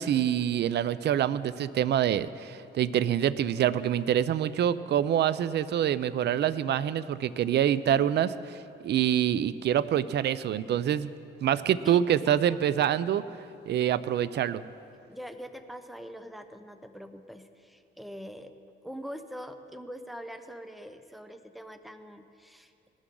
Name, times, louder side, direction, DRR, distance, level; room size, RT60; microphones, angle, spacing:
voice 1, 0.0-8.3 8.8-11.1 11.4-13.2 13.7-14.6, right 10 dB, 60° right, 16 dB, 0.5 m, -26 dB
voice 2, 7.9-8.5 11.8-12.6 15.1-18.5 18.8-22.7, equal, ahead, 8 dB, 0.9 m, -43 dB
20.0 x 12.5 x 3.9 m, 2.7 s
cardioid pair, 90°, 20 cm